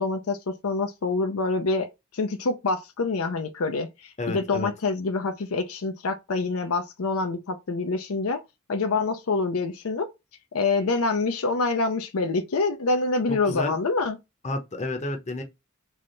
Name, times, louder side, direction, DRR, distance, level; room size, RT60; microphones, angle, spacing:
voice 1, 0.0-8.4 8.7-10.1 10.5-14.2, left 3 dB, 75° left, 0.6 m, -26 dB
voice 2, 4.2-4.7 13.3-13.7 14.4-15.4, left 2 dB, 30° left, 0.8 m, -31 dB
3.5 x 3.3 x 3.8 m
head